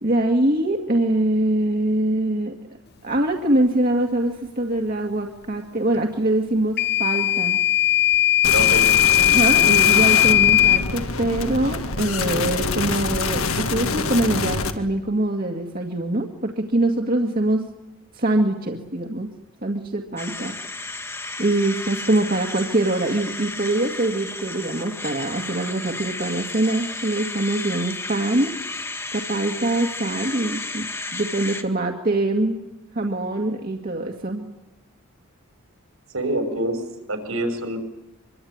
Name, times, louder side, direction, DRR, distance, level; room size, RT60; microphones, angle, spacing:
voice 1, 0.0-2.6 3.0-7.6 9.3-17.6 18.1-19.3 19.6-20.6 20.9-21.0 21.4-32.7 32.9-34.5, right 1 dB, 40° right, 1 dB, 2.1 m, -23 dB
Microwave oven / Alarm, 6.8-10.9, left 11 dB, 50° left, 1.0 m, -17 dB
sound 1, 8.4-14.7, left 4 dB, 75° left, 2.2 m, -25 dB
voice 2, 8.5-8.8 36.1-36.8 37.1-37.8, right 1 dB, 75° right, 6 dB, 6.0 m, -25 dB
sound 2, 20.2-31.6, left 3 dB, 10° left, 1.6 m, -33 dB
25.0 x 24.0 x 9.6 m, 0.96 s
head